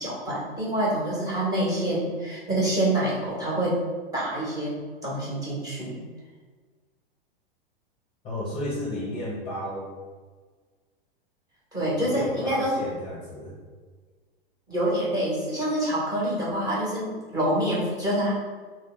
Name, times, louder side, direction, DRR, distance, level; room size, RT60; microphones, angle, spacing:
voice 1, 0.0-3.8 4.1-6.0 11.7-12.8 14.7-18.3, right 1 dB, 10° right, -7 dB, 1.4 m, -26 dB
voice 2, 8.2-9.9 12.0-13.5, left 1 dB, 20° left, -6 dB, 1.0 m, -33 dB
3.7 x 2.4 x 3.7 m, 1.4 s
figure-of-eight pair, 95°, 29 cm